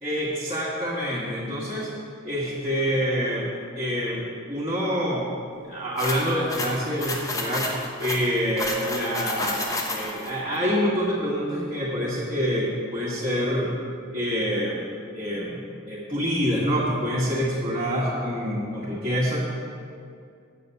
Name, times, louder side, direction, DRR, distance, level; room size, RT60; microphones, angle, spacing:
voice 1, 0.0-1.9 2.2-3.5 3.7-5.2 5.6-7.7 8.0-13.7 14.1-14.8 15.1-19.4, equal, 25° right, -11 dB, 1.7 m, -26 dB
sound 1, 6.0-10.3, left 2 dB, 15° left, 0.9 m, -30 dB
8.4 x 6.8 x 6.9 m, 2.3 s
head